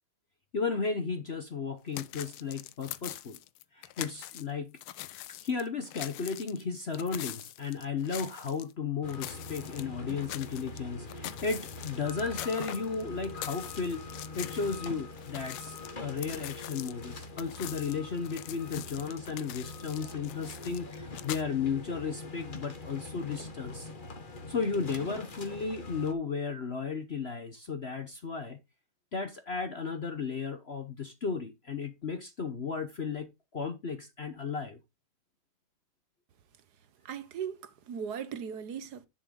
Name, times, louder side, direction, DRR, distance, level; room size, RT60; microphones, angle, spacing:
voice 1, 0.5-3.4 3.7-4.8 5.4-14.1 14.3-23.9 24.5-28.6 29.1-34.8, left 5 dB, 45° left, 0.8 m, -34 dB
sound 1, 1.9-4.4 4.8-8.7 9.1-10.8 11.1-14.9 15.2-21.4, left 14 dB, 85° left, 1.5 m, -43 dB
sound 2, 9.0-26.1, left 3 dB, 30° left, 1.1 m, -43 dB
voice 2, 37.0-39.1, right 7 dB, 55° right, 1.3 m, -38 dB
10.5 x 6.7 x 3.8 m
omnidirectional pair, 2.3 m